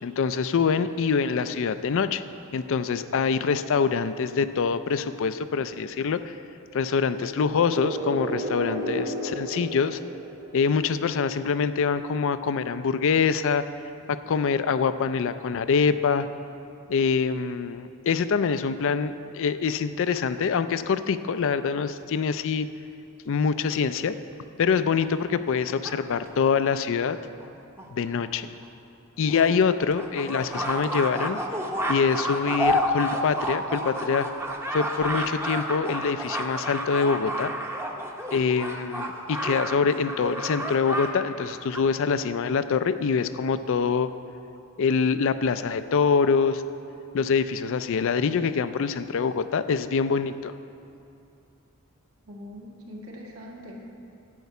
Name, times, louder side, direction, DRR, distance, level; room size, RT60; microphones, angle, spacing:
voice 1, 0.0-2.2 2.5-6.3 6.7-10.0 10.5-13.6 14.1-16.3 16.9-22.7 23.3-24.1 24.6-27.2 27.9-28.5 29.2-31.4 31.9-34.3 34.7-37.5 38.3-44.1 44.8-46.6 47.1-50.5, left 5 dB, 60° left, 12 dB, 0.4 m, -25 dB
sound 1, 7.2-11.0, equal, 40° right, 1.3 m, -33 dB
sound 2, 25.0-26.6 27.4-27.5 27.8-27.9 28.2-28.3 28.6-28.7 29.2-41.1 41.4-41.8, equal, 10° right, 0.7 m, -30 dB
voice 2, 52.3-53.8, equal, 75° right, -2 dB, 1.8 m, -42 dB
11.0 x 5.8 x 8.1 m, 2.6 s
head